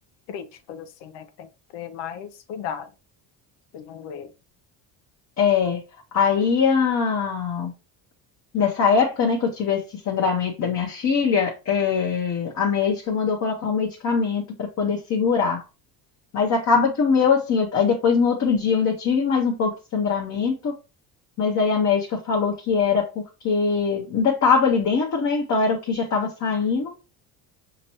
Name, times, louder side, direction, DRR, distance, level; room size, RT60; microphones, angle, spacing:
voice 1, 0.3-1.5 1.7-2.9 3.7-4.3, left 8 dB, 75° left, 0.7 m, -36 dB
voice 2, 5.4-5.8 6.1-7.7 8.5-15.6 16.3-20.7 21.4-23.1 23.4-26.9, left 5 dB, 40° left, 0.9 m, -22 dB
5.1 x 3.0 x 2.9 m
cardioid pair, 110°, 42 cm